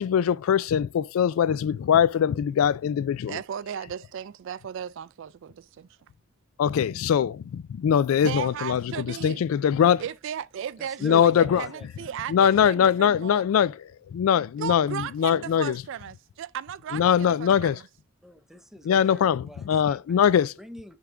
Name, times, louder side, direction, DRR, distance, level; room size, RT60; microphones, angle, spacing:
voice 1, 0.0-3.4 6.6-10.0 11.0-11.6 12.3-15.8 16.9-17.8 18.8-20.5, left 8 dB, 80° left, 0.3 m, -22 dB
voice 2, 3.3-5.9 8.2-9.4 10.0-13.5 14.6-17.8, right 9 dB, 60° right, 0.3 m, -36 dB
voice 3, 10.8-12.2 18.2-21.0, equal, ahead, 0.6 m, -44 dB
6.7 x 3.7 x 4.4 m
head